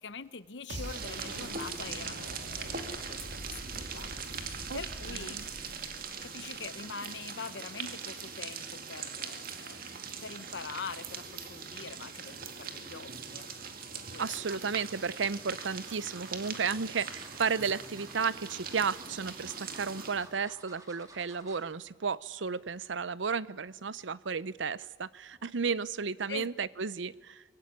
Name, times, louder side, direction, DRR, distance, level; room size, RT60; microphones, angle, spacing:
voice 1, 0.0-5.4 6.2-9.8 10.2-13.5 13.8-14.6 26.3-26.5, left 5 dB, 70° left, 16 dB, 0.9 m, -44 dB
sound 1, 0.7-20.3, right 5 dB, 50° right, 2.1 m, -41 dB
sound 2, 0.7-6.7, right 1 dB, 70° right, 2.9 m, -44 dB
sound 3, 14.0-14.3 15.0-21.7 22.1-22.3 22.6-22.7, right 2 dB, 20° right, 2.7 m, -55 dB
voice 2, 14.2-27.4, right 5 dB, 85° right, 19 dB, 0.7 m, -33 dB
23.5 x 22.0 x 9.6 m, 1.4 s
head